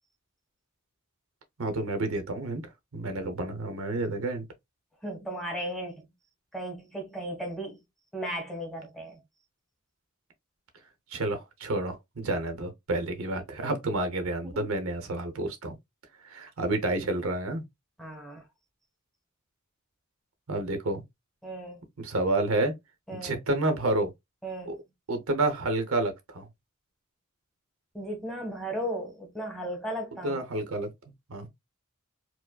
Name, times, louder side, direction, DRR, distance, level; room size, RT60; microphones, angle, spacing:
voice 1, 1.6-4.5 11.1-15.8 16.3-17.6 20.5-21.0 22.0-22.7 23.1-24.1 24.7-24.8 25.1-26.5 30.2-30.9 31.3-31.5, right 2 dB, 65° right, 0.8 m, -29 dB
voice 2, 5.0-6.1 6.5-7.8 8.1-9.2 14.4-14.7 18.0-18.5 21.4-21.8 23.1-23.4 24.4-24.8 27.9-30.4, right 1 dB, ahead, 1.2 m, -36 dB
4.6 x 2.0 x 2.2 m
head